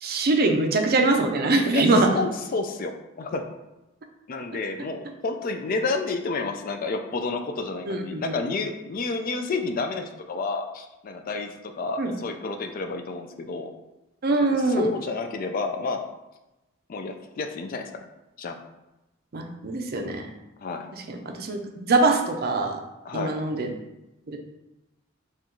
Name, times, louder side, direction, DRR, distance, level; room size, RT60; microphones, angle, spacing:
voice 1, 0.0-2.1 7.9-8.3 12.0-12.1 14.2-14.9 19.3-20.3 21.1-22.8 23.1-23.7 24.3-24.4, right 2 dB, 50° right, 4 dB, 0.5 m, -23 dB
voice 2, 2.1-2.9 3.2-3.4 4.3-13.7 14.5-16.0 16.9-18.0 18.4-18.6 20.6-20.9 23.0-23.3, left 3 dB, 45° left, 5 dB, 0.4 m, -30 dB
4.4 x 2.4 x 3.7 m, 0.98 s
head